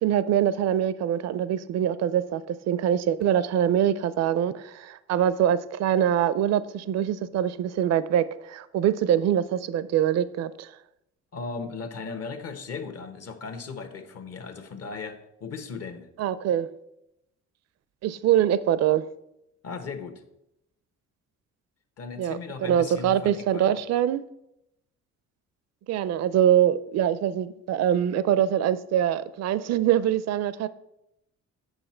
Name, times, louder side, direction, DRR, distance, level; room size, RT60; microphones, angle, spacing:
voice 1, 0.0-10.7 16.2-16.7 18.0-19.0 22.2-24.2 25.9-30.7, right 10 dB, 60° right, 0.5 m, -24 dB
voice 2, 11.3-16.1 19.6-20.2 22.0-23.8, left 4 dB, 55° left, 1.2 m, -37 dB
8.0 x 5.9 x 4.4 m
cardioid pair, 90°, 30 cm